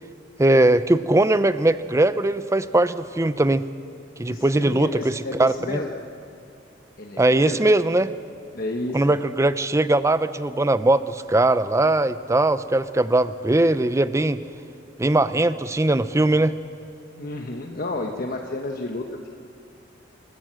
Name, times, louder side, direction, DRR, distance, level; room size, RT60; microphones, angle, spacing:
voice 1, 0.4-3.6 4.2-5.8 7.2-8.1 8.9-14.4 15.0-16.5, right 2 dB, 15° right, 14 dB, 0.5 m, -20 dB
voice 2, 4.3-5.9 7.0-7.6 8.5-9.2 17.2-19.0, left 2 dB, 50° left, 2 dB, 1.1 m, -31 dB
27.5 x 16.0 x 7.6 m, 2.5 s
head